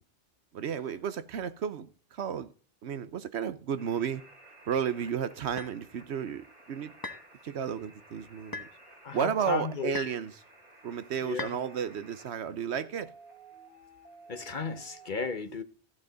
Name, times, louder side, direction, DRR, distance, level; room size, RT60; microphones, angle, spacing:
voice 1, 0.5-2.5 2.8-4.2 4.7-6.9 7.4-8.7 9.1-10.4 10.8-13.1, right 8 dB, 70° right, 1.0 m, -33 dB
sound 1, 3.8-15.1, right 2 dB, 45° right, 2.6 m, -55 dB
sound 2, 5.6-5.8 7.0-7.3 8.5-8.7 9.9-10.3 11.4-11.6, left 3 dB, 20° left, 0.9 m, -38 dB
voice 2, 9.0-10.0 11.2-11.6 14.3-15.6, left 5 dB, 45° left, 0.9 m, -34 dB
14.0 x 8.5 x 3.9 m
omnidirectional pair, 1.2 m